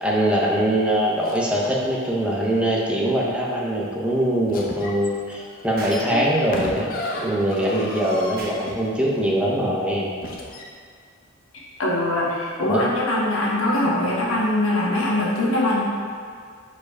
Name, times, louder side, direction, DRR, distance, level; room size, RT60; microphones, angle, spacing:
voice 1, 0.0-6.9 7.2-10.1 12.7-12.9, right 1 dB, 5° right, -4 dB, 0.7 m, -22 dB
sound 1, 1.2-1.7 4.5-9.2 10.2-10.7, left 1 dB, 45° left, 0.7 m, -35 dB
Explosion, 5.8-6.1 8.3-8.6, right 1 dB, 45° right, 0.9 m, -36 dB
sound 2, 6.1-9.9, left 3 dB, 70° right, 1.4 m, -40 dB
voice 2, 11.8-15.8, left 1 dB, 85° left, -4 dB, 1.3 m, -22 dB
4.9 x 4.5 x 4.7 m, 2.1 s
head